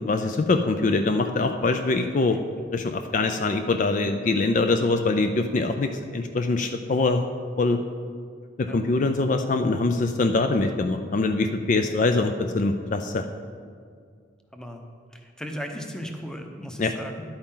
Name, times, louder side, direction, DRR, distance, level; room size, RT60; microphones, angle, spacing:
voice 1, 0.0-2.4 2.7-7.3 7.6-7.8 8.6-13.2 16.8-16.9, left 3 dB, 45° left, 7 dB, 0.4 m, -23 dB
voice 2, 14.5-14.9 15.1-17.2, equal, 5° left, 4 dB, 0.8 m, -36 dB
11.0 x 8.6 x 3.8 m, 2.1 s
head